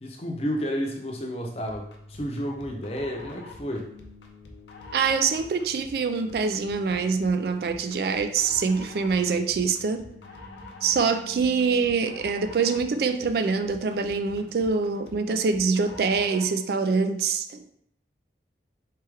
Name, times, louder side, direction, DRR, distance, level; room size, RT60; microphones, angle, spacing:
voice 1, 0.0-3.9, equal, 35° left, 1 dB, 0.7 m, -31 dB
sound 1, 1.7-16.6, left 2 dB, 85° left, 0.7 m, -45 dB
voice 2, 4.9-10.1 10.8-17.7, right 5 dB, 60° right, 9 dB, 0.3 m, -25 dB
4.3 x 3.3 x 3.4 m, 0.71 s
head